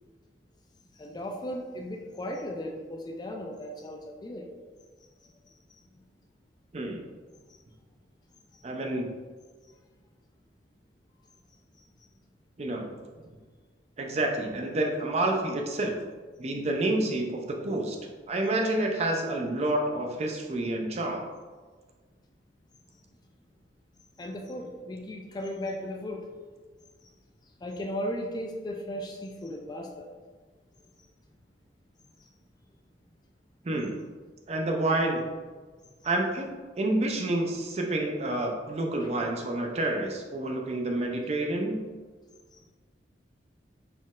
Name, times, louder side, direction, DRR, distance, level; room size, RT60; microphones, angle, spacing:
voice 1, 1.0-4.5 24.2-26.3 27.6-30.1 39.0-39.1 42.5-42.6, equal, 25° left, 1 dB, 0.4 m, -36 dB
voice 2, 8.6-9.1 12.6-12.9 13.1-13.2 14.0-15.9 16.4-18.0 18.3-21.2 33.6-34.0 34.5-35.2 36.0-41.9, right 2 dB, 35° right, 2 dB, 0.5 m, -29 dB
4.2 x 3.7 x 2.4 m, 1.4 s
head